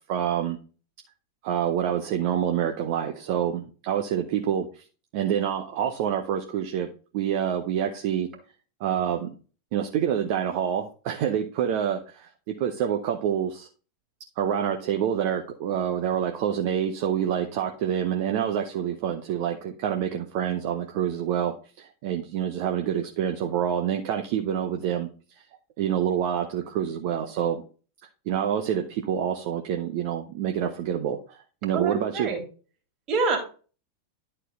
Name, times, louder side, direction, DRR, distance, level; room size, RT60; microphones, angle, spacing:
voice 1, 0.1-0.6 1.4-4.9 5.1-8.3 8.8-9.3 9.7-13.7 14.4-25.1 25.8-27.6 28.3-32.3, right 9 dB, 45° right, 5 dB, 0.8 m, -27 dB
voice 2, 31.7-32.4 33.1-33.4, right 4 dB, 30° right, 1 dB, 2.9 m, -25 dB
11.0 x 4.4 x 4.0 m, 0.37 s
figure-of-eight pair, 90°, 0 cm